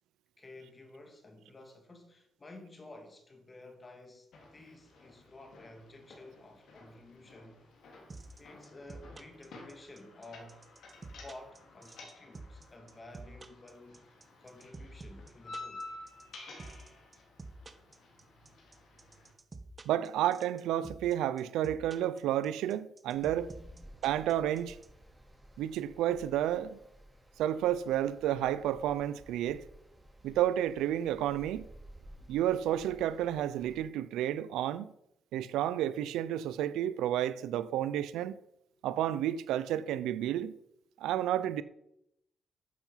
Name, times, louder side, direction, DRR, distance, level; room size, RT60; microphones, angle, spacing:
voice 1, 0.4-7.6 8.4-10.6 11.2-14.0 14.4-15.9 23.6-23.8, left 2 dB, 30° left, 2.5 m, -52 dB
sound 1, 4.3-19.3, left 2 dB, 70° left, 3.5 m, -52 dB
sound 2, 8.1-24.9, right 3 dB, 30° right, 1.5 m, -48 dB
voice 2, 19.9-23.5 24.0-24.8 25.6-26.8 27.4-29.6 30.2-31.7 32.3-34.9 35.3-38.4 38.8-40.5 41.0-41.6, right 11 dB, 85° right, 0.6 m, -31 dB
sound 3, 23.1-33.8, right 1 dB, 5° right, 3.6 m, -55 dB
11.0 x 7.2 x 5.7 m
cardioid pair, 75°, 0 cm